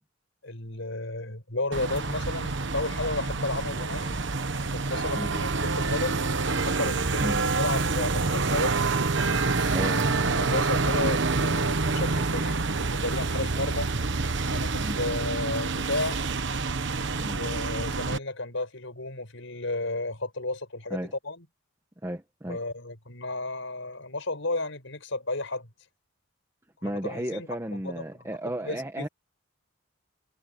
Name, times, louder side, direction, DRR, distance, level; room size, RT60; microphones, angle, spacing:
voice 1, 0.4-4.1 4.7-6.2 6.5-8.7 9.8-13.9 14.5-16.2 17.3-21.0 21.2-21.5 22.5-25.7 26.8-28.3 28.6-29.1, left 2 dB, 65° left, 5.8 m, -33 dB
sound 1, 1.7-18.2, right 3 dB, 60° right, 1.2 m, -27 dB
voice 2, 22.0-22.6 26.8-29.1, right 1 dB, 15° right, 1.5 m, -33 dB
head